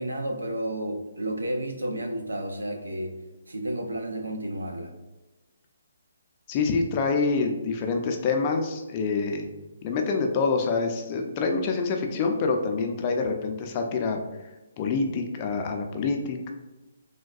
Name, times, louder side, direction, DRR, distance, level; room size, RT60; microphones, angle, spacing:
voice 1, 0.0-3.1 3.5-4.9, right 1 dB, 85° right, 5 dB, 0.5 m, -31 dB
voice 2, 6.5-9.5 9.8-14.2 14.8-16.5, left 4 dB, 35° left, 3 dB, 0.4 m, -26 dB
3.4 x 2.2 x 2.3 m, 1.1 s
figure-of-eight pair, 140°, 0 cm